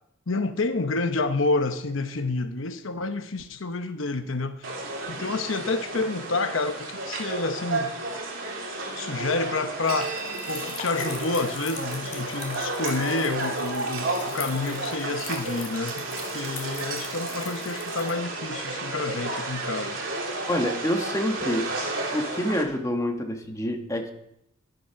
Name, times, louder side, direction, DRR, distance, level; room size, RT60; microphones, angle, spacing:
voice 1, 0.3-4.7 5.1-7.9 9.0-10.2 10.5-16.1 16.3-20.0, left 3 dB, 75° left, 8 dB, 1.0 m, -29 dB
sound 1, 4.6-22.6, right 2 dB, 80° right, 2.9 m, -32 dB
sound 2, 8.1-18.1, left 6 dB, 45° left, 3.0 m, -43 dB
voice 2, 20.5-21.6 22.1-24.1, equal, 15° left, 3 dB, 1.6 m, -27 dB
12.5 x 10.5 x 5.8 m, 0.77 s
head